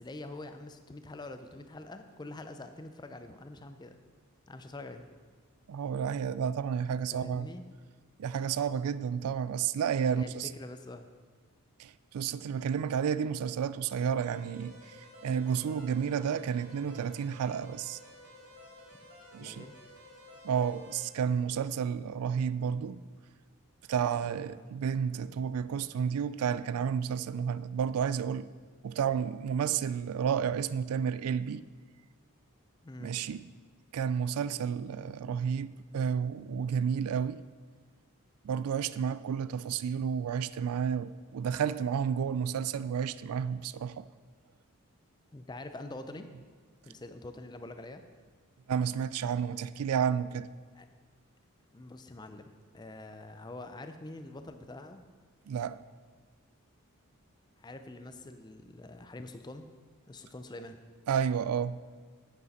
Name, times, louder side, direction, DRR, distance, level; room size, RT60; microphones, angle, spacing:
voice 1, 0.0-4.0 4.5-5.1 7.1-7.7 10.1-11.1 19.4-19.8 24.2-24.7 32.8-33.2 45.3-46.3 46.8-48.0 50.7-50.9 51.7-55.1 57.6-59.7 60.1-60.8, left 2 dB, 20° left, 0.4 m, -45 dB
voice 2, 5.7-7.5 8.2-10.5 11.8-18.0 19.3-19.7 20.4-23.0 23.9-28.5 28.8-31.6 33.0-33.5 33.9-37.4 38.4-44.1 48.7-50.5 55.5-55.8 61.1-61.8, right 7 dB, 80° right, 0.3 m, -31 dB
sound 1, 14.2-21.0, left 1 dB, 60° right, 2.1 m, -53 dB
9.2 x 8.2 x 4.2 m
head